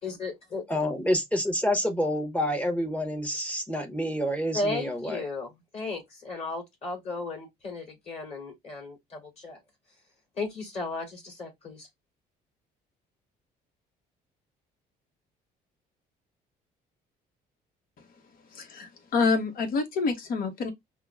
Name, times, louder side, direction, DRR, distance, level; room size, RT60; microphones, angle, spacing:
voice 1, 0.0-0.6 4.5-9.6 10.4-11.9, left 3 dB, 35° left, 2.4 m, -35 dB
voice 2, 0.7-5.2, equal, 10° left, 0.9 m, -28 dB
voice 3, 18.5-20.7, left 4 dB, 60° left, 1.0 m, -27 dB
5.4 x 2.1 x 2.3 m
cardioid pair, 110°, 17 cm